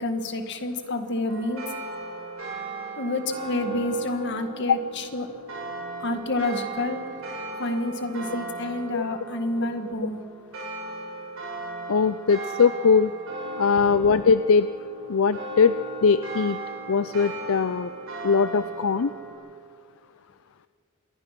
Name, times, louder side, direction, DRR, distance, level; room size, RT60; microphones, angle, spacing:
voice 1, 0.0-1.6 3.0-5.3 6.0-7.0 7.6-10.2 13.9-14.0, left 1 dB, 60° left, 7 dB, 2.0 m, -28 dB
sound 1, 1.3-19.3, right 2 dB, 85° right, 6.7 m, -37 dB
voice 2, 11.9-13.1 13.6-14.7 15.1-15.8 16.0-16.6 16.9-17.9 18.2-19.1, left 5 dB, 80° left, 13 dB, 0.5 m, -21 dB
26.5 x 21.5 x 6.1 m, 2.1 s
head